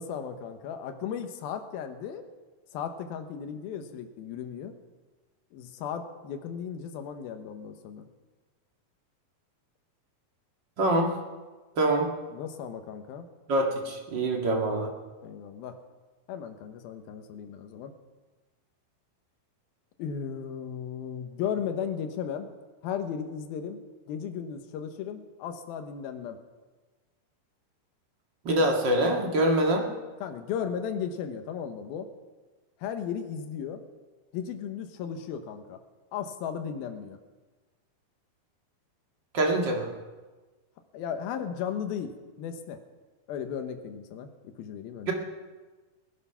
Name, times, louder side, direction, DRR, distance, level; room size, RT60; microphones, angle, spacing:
voice 1, 0.0-2.3 2.7-4.7 5.5-8.1 12.3-13.3 15.2-15.8 16.3-17.9 20.0-22.5 22.8-23.8 24.1-26.4 30.2-32.1 32.8-33.8 34.3-35.8 36.1-37.2 40.9-42.8 43.3-45.1, left 7 dB, 80° left, 7 dB, 2.9 m, -35 dB
voice 2, 10.8-11.2 11.8-12.1 13.5-14.9 28.4-29.9 39.3-39.9 45.1-45.2, right 1 dB, 40° right, 1 dB, 1.9 m, -25 dB
20.0 x 10.5 x 5.7 m, 1.3 s
omnidirectional pair, 4.3 m